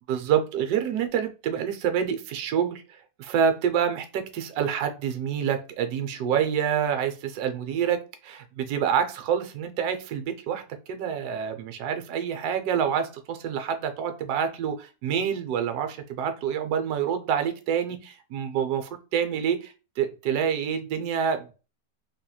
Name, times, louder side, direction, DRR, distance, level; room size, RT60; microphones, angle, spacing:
voice 1, 0.1-2.8 3.2-21.5, right 8 dB, 70° right, 1.0 m, -27 dB
3.2 x 2.9 x 2.2 m
omnidirectional pair, 2.0 m